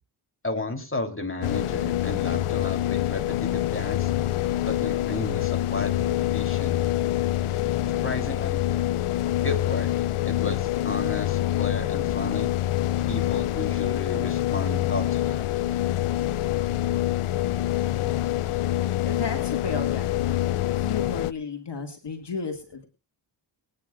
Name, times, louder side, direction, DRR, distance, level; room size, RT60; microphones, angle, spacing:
voice 1, 0.4-4.1 4.7-6.8 7.9-8.6 9.4-12.5 13.1-15.4, left 2 dB, 25° left, 3 dB, 3.4 m, -33 dB
speed boat outboard int cabin high gear facing closed bow, 1.4-21.3, left 13 dB, 90° left, 0.6 m, -26 dB
voice 2, 19.0-20.1 20.7-22.8, left 5 dB, 55° left, 3 dB, 2.2 m, -33 dB
23.5 x 9.7 x 2.5 m, 0.31 s
cardioid pair, 60°, 49 cm